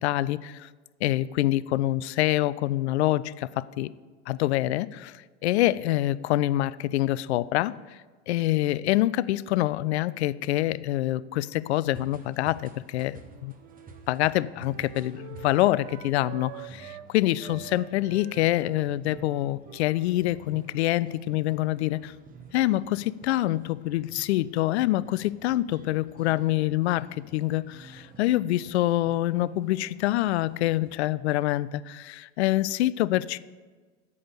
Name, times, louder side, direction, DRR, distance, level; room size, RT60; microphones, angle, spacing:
voice 1, 0.0-0.7 1.0-3.9 4.3-7.7 8.3-13.5 14.1-22.1 22.5-33.4, left 15 dB, 70° left, 19 dB, 0.5 m, -26 dB
sound 1, 11.9-31.0, right 4 dB, 25° right, 1.2 m, -51 dB
Wind instrument woodwind instrument, 13.1-17.1 17.4-21.9, right 13 dB, 50° right, 0.8 m, -47 dB
8.5 x 6.9 x 8.1 m, 1.4 s
hypercardioid pair, 90°, 35 cm